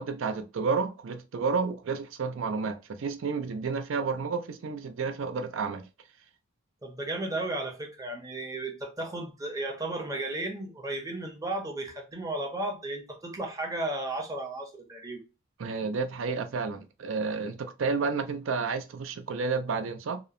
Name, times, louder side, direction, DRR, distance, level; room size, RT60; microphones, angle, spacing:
voice 1, 0.0-5.8 15.6-20.2, right 4 dB, 70° right, 0.4 m, -31 dB
voice 2, 6.8-15.2, right 2 dB, 15° right, 0.6 m, -34 dB
2.9 x 2.0 x 2.4 m
head